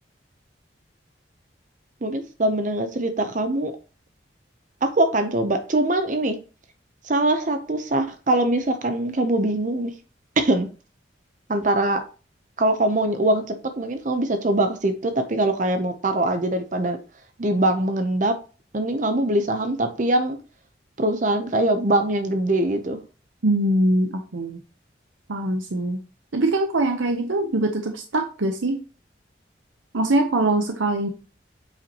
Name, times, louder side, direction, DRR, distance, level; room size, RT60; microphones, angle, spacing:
voice 1, 2.0-3.7 4.8-6.4 7.0-9.9 10.4-10.7 11.5-12.0 12.6-17.0 17.4-18.4 18.7-20.4 21.0-23.0, right 1 dB, 40° right, 0.7 m, -22 dB
voice 2, 23.4-24.6 25.3-26.0 26.3-28.8 29.9-31.1, right 2 dB, 85° right, 0.8 m, -22 dB
8.3 x 5.3 x 2.9 m
head